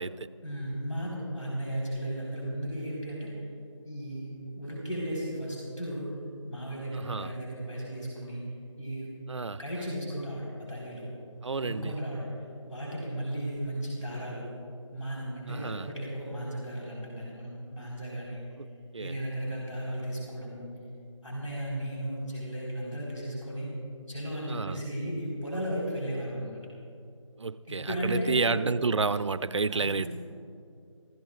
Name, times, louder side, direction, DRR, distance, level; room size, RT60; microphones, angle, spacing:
voice 1, 0.4-3.5 3.8-6.1 6.4-8.5 8.8-9.1 9.6-11.1 11.6-14.5 14.9-18.4 19.0-20.7 21.2-23.7 24.1-26.6 27.7-28.6 29.7-30.1, right 1 dB, 75° left, 4.4 m, -35 dB
voice 2, 6.9-7.3 9.3-9.6 11.4-12.0 15.5-15.9 18.6-18.7 18.9-19.2 24.5-24.9 27.4-30.1, right 4 dB, 65° right, 0.5 m, -30 dB
29.5 x 15.0 x 2.5 m
figure-of-eight pair, 165°, 17 cm